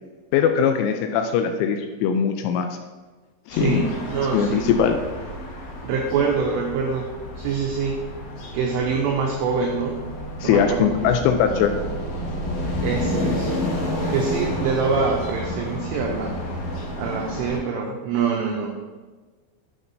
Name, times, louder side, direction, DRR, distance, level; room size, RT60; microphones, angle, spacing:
voice 1, 0.3-2.7 3.5-3.9 4.3-5.0 10.4-11.7, left 8 dB, 85° left, 6 dB, 2.9 m, -20 dB
sound 1, 3.5-17.6, left 1 dB, 65° left, 3.5 m, -30 dB
voice 2, 3.5-4.7 5.8-8.0 8.5-10.1 10.4-11.5 12.8-13.7 14.1-16.4 17.0-19.0, right 5 dB, 85° right, 0 dB, 2.4 m, -25 dB
8.8 x 6.6 x 2.7 m, 1.3 s
omnidirectional pair, 5.8 m